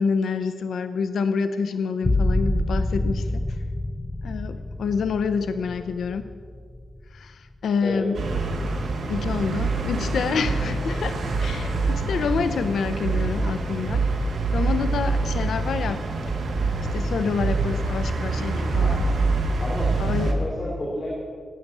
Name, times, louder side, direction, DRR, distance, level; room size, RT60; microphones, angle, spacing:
voice 1, 0.0-3.6 4.2-6.3 7.1-8.3 9.1-14.0 14.5-16.4 16.8-19.0 20.0-20.3, left 5 dB, 80° left, 9 dB, 0.6 m, -27 dB
sound 1, 2.0-7.5 7.9-8.6, left 1 dB, 15° left, 0.5 m, -27 dB
sound 2, 8.1-20.3, right 3 dB, 85° right, 2.2 m, -25 dB
voice 2, 18.7-19.2 19.6-21.1, left 1 dB, 30° left, -5 dB, 3.2 m, -32 dB
17.5 x 9.1 x 7.3 m, 2.1 s
wide cardioid pair, 175°, 0 cm